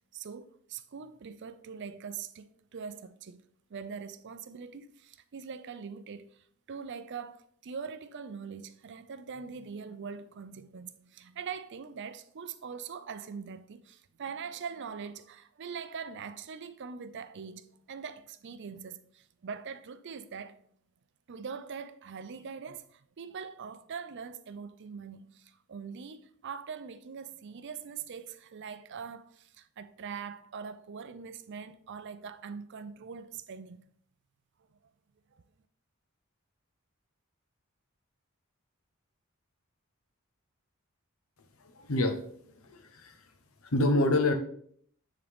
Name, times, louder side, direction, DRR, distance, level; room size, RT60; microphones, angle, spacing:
voice 1, 0.1-3.4 3.7-20.6 21.3-33.8 35.3-35.4, right 6 dB, 55° right, 0.5 m, -42 dB
voice 2, 41.6-42.3 42.6-43.2 43.6-44.3, left 2 dB, 70° left, 0.9 m, -27 dB
9.6 x 3.8 x 3.5 m
head